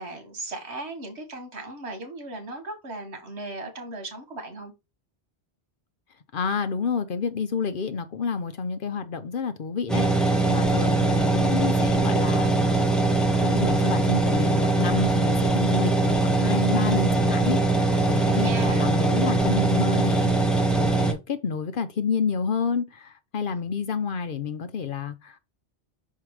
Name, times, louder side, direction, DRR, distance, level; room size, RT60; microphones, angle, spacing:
voice 1, 0.0-4.7 18.2-18.9, right 2 dB, 75° right, 1.9 m, -36 dB
voice 2, 6.3-12.8 13.4-20.3 20.8-25.4, left 5 dB, 55° left, 0.8 m, -29 dB
sound 1, 9.9-21.1, right 3 dB, ahead, 0.8 m, -22 dB
5.7 x 4.6 x 4.7 m
omnidirectional pair, 1.1 m